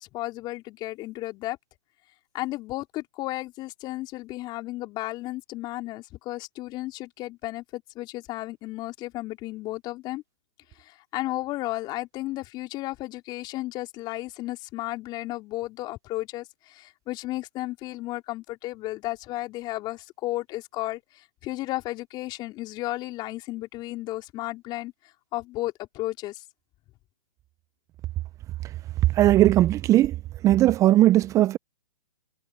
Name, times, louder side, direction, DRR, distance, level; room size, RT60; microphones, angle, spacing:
voice 1, 0.1-1.6 2.3-10.2 10.8-24.9 25.3-26.4, left 18 dB, 30° left, 3.8 m, -33 dB
voice 2, 29.1-30.1 30.4-31.6, right 14 dB, 20° right, 0.7 m, -18 dB
hypercardioid pair, 130°, 15 cm